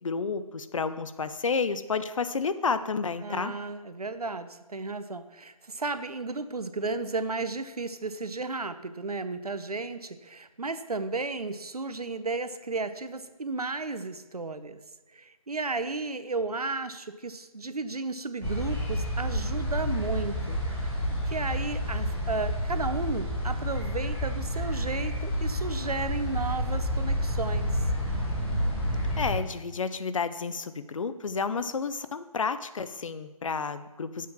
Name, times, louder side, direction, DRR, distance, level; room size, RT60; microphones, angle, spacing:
voice 1, 0.0-3.5 29.2-34.3, left 5 dB, 60° left, 12 dB, 0.7 m, -31 dB
voice 2, 3.2-14.8 15.1-21.0 21.3-27.8, right 3 dB, 90° right, 12 dB, 0.8 m, -34 dB
sound 1, 18.4-29.4, equal, 10° left, 3.5 m, -29 dB
7.5 x 5.6 x 7.3 m, 1.1 s
figure-of-eight pair, 150°, 19 cm